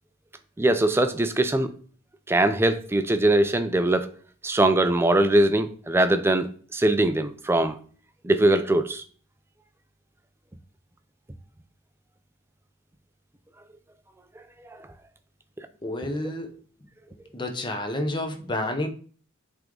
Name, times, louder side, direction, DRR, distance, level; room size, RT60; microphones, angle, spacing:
voice 1, 0.6-1.7 2.3-4.1 4.4-7.8 8.2-9.0, right 1 dB, 10° right, 9 dB, 0.4 m, -21 dB
voice 2, 15.8-16.6 17.3-18.9, left 1 dB, 20° left, 5 dB, 0.8 m, -29 dB
7.7 x 3.6 x 3.8 m, 0.44 s
head